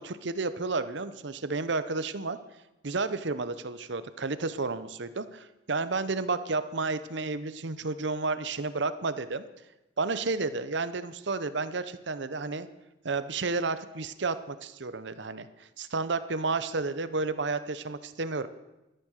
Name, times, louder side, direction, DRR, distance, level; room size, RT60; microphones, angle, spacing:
voice 1, 0.0-2.4 2.8-9.4 10.0-12.7 13.0-18.5, right 3 dB, 65° right, 12 dB, 0.8 m, -31 dB
13.5 x 10.5 x 6.5 m, 0.97 s
head